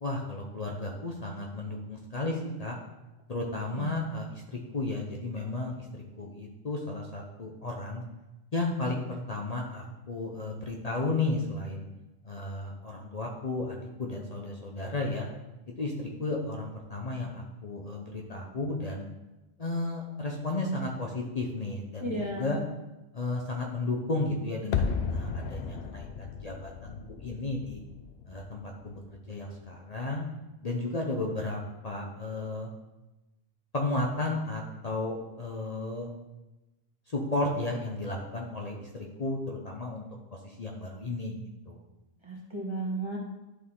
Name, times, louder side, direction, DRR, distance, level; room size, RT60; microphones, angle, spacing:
voice 1, 0.0-2.8 3.3-8.0 8.5-11.9 12.2-15.3 15.8-19.1 19.6-22.6 23.1-27.8 28.3-30.2 30.6-32.7 33.7-36.1 37.1-40.0 40.4-41.4 41.7-41.8, left 2 dB, 40° left, 0 dB, 0.8 m, -33 dB
voice 2, 22.0-22.6 42.2-43.2, right 1 dB, 25° right, -2 dB, 1.4 m, -34 dB
sound 1, 24.7-29.7 29.9-30.0, left 5 dB, 70° left, 0.9 m, -35 dB
11.0 x 4.1 x 3.7 m, 1.0 s
omnidirectional pair, 1.1 m